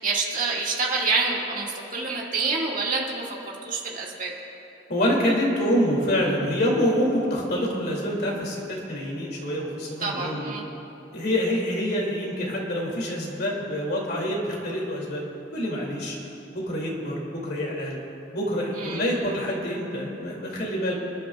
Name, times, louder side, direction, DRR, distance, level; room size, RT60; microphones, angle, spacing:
voice 1, 0.0-3.2 3.6-4.3 10.0-10.6 18.8-19.0, right 4 dB, 45° right, -3 dB, 1.9 m, -27 dB
voice 2, 4.9-10.5 11.1-15.2 15.5-16.2 16.5-18.0 18.3-20.9, equal, 55° left, -2 dB, 2.5 m, -26 dB
27.5 x 11.5 x 2.3 m, 2.9 s
head